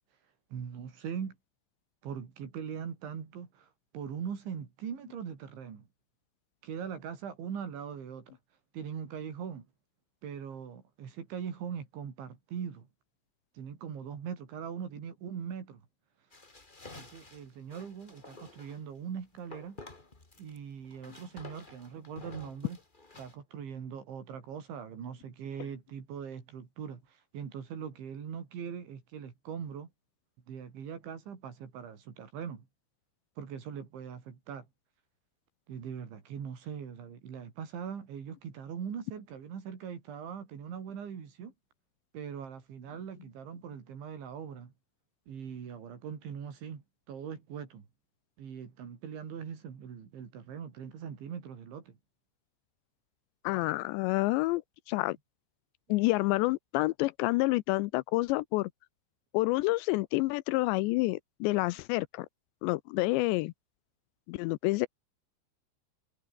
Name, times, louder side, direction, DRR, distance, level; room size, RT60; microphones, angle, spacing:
voice 1, 0.5-1.4 2.0-5.9 6.6-8.4 8.7-9.7 10.2-12.9 13.6-15.8 16.9-19.8 20.4-22.8 23.2-29.9 30.5-32.7 33.4-34.7 35.7-41.5 42.1-44.7 45.3-47.9 48.4-52.0, right 7 dB, 80° right, 6.5 m, -41 dB
sound 1, 16.3-18.8 19.5-20.6 20.8-23.3, left 2 dB, 20° left, 1.5 m, -51 dB
voice 2, 53.4-54.6 54.9-55.2 55.9-58.7 59.3-62.3 62.6-63.5 64.3-64.9, left 21 dB, 80° left, 2.7 m, -28 dB
omnidirectional pair, 5.3 m